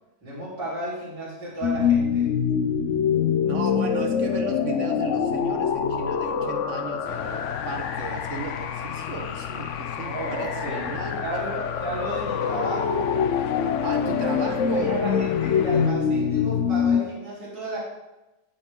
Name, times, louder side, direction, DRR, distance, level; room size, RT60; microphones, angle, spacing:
voice 1, 0.2-2.3 10.0-10.8 11.2-13.3 14.2-14.3 14.7-17.8, right 1 dB, 75° right, -7 dB, 4.8 m, -33 dB
sound 1, 1.6-17.0, left 7 dB, 55° left, 0.9 m, -25 dB
voice 2, 3.4-11.5 13.8-15.0, right 4 dB, 45° right, 5 dB, 1.3 m, -35 dB
sound 2, 7.0-15.9, left 11 dB, 85° left, 0.6 m, -36 dB
14.0 x 9.8 x 3.7 m, 1.0 s
omnidirectional pair, 1.9 m